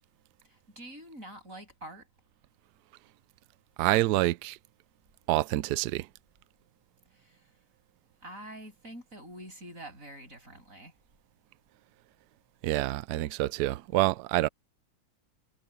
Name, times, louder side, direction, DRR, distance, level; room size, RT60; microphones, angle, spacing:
voice 1, 0.8-2.1 7.2-7.4 8.2-10.9, right 1 dB, 35° right, 8.4 m, -46 dB
voice 2, 3.8-4.6 5.3-6.1 12.6-14.5, right 17 dB, 85° right, 0.8 m, -27 dB
omnidirectional pair, 2.3 m